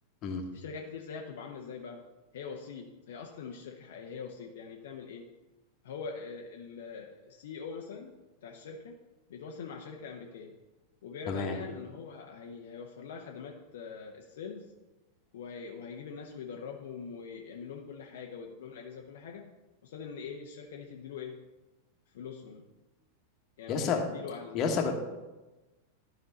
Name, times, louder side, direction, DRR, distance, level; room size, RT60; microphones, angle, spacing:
voice 1, 0.5-2.0 2.3-5.2 5.8-8.1 8.4-9.0 9.3-10.5 11.0-14.7 15.3-19.4 19.8-21.4 22.1-22.7 23.6-24.6, left 5 dB, 60° left, 1 dB, 0.7 m, -43 dB
voice 2, 11.3-11.6 23.7-24.0 24.5-24.9, left 5 dB, 35° left, 3 dB, 1.3 m, -29 dB
12.0 x 4.5 x 4.0 m, 1.1 s
figure-of-eight pair, 90°, 0 cm